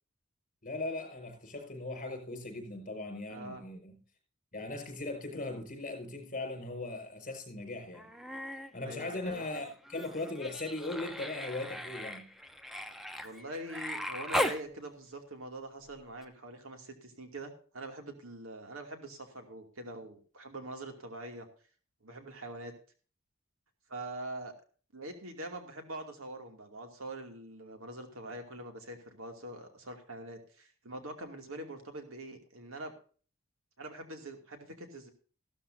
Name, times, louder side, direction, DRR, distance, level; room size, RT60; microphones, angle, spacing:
voice 1, 0.6-4.0 4.5-8.1 8.7-12.3, left 2 dB, 40° left, 4 dB, 5.4 m, -39 dB
voice 2, 3.3-3.6 8.8-9.6 13.2-21.5 22.0-22.7 23.9-24.5 24.9-32.9 33.8-35.1, right 1 dB, 80° right, 5 dB, 2.5 m, -44 dB
Human voice, 7.9-8.7 9.0-14.6 16.2-16.3, equal, ahead, 0.8 m, -38 dB
15.0 x 13.0 x 2.7 m, 0.40 s
head